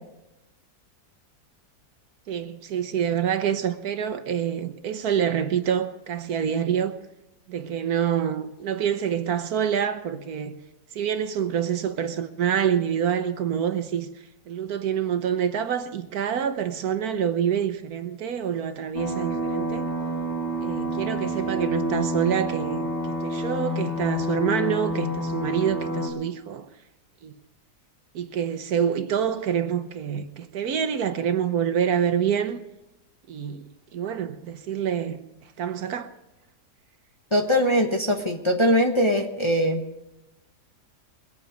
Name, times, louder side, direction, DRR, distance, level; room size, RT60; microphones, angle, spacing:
voice 1, 2.3-7.0 7.5-10.6 10.9-14.1 14.5-19.9 20.6-26.7 27.2-27.3 28.1-32.6 33.3-33.6 33.9-35.2 35.6-36.1, right 8 dB, 70° right, 1.3 m, -26 dB
sound 1, 18.9-26.1, equal, 40° left, 2.3 m, -28 dB
voice 2, 37.3-39.8, equal, 20° left, 1.1 m, -21 dB
22.0 x 8.7 x 5.1 m
omnidirectional pair, 1.8 m